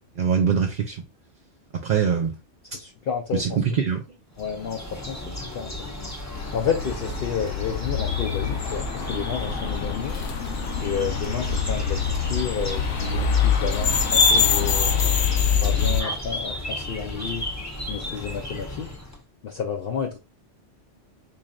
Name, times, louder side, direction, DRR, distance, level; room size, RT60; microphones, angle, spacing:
voice 1, 0.2-1.0 1.7-2.4 3.3-4.2, right 7 dB, 55° right, 0.6 m, -23 dB
voice 2, 2.7-3.6 4.4-6.1 6.5-10.2 10.8-14.9 15.6-17.5 17.9-19.0 19.4-20.2, left 7 dB, 60° left, 0.7 m, -31 dB
sound 1, 4.4-19.2, left 1 dB, 15° left, 0.7 m, -34 dB
sound 2, 6.3-16.0, left 6 dB, 85° left, 1.0 m, -24 dB
4.1 x 3.2 x 2.5 m
omnidirectional pair, 1.2 m